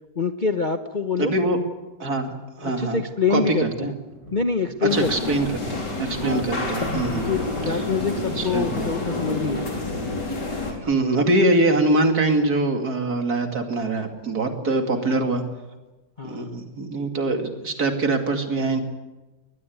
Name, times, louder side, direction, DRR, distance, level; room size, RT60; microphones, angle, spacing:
voice 1, 0.2-1.3 2.6-3.9 4.3-5.4 6.2-6.6 7.2-9.8 14.6-15.0 16.2-16.5, left 4 dB, 35° left, 6 dB, 0.9 m, -26 dB
voice 2, 1.2-1.6 2.0-2.3 2.6-3.0 3.3-3.9 4.8-7.3 8.4-8.7 10.8-15.4 16.2-18.8, right 2 dB, 60° right, 5 dB, 3.0 m, -23 dB
sound 1, 3.3-9.4 9.9-10.5 11.8-12.2 12.4-12.5 12.8-13.1 13.9-14.9 15.3-15.4, right 1 dB, 35° right, 7.5 m, -47 dB
sound 2, 4.9-10.7, left 2 dB, 75° left, 4.9 m, -28 dB
21.5 x 21.0 x 9.4 m, 1.1 s
omnidirectional pair, 1.9 m